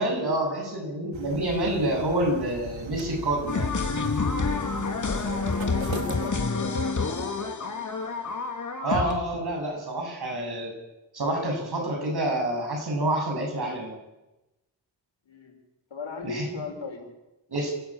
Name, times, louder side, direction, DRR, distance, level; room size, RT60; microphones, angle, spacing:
voice 1, 0.0-3.7 8.8-10.7 11.1-14.0 16.2-16.5 17.5-17.8, right 1 dB, 60° right, 2 dB, 7.5 m, -27 dB
sound 1, 1.1-6.3, right 4 dB, 85° right, 2.5 m, -39 dB
sound 2, 3.5-9.1, left 4 dB, 40° left, 2.7 m, -28 dB
voice 2, 5.0-8.1 15.3-15.5 15.9-17.1, left 4 dB, 85° left, 3 dB, 5.7 m, -39 dB
28.0 x 15.5 x 8.7 m, 1.0 s
wide cardioid pair, 130°, 45 cm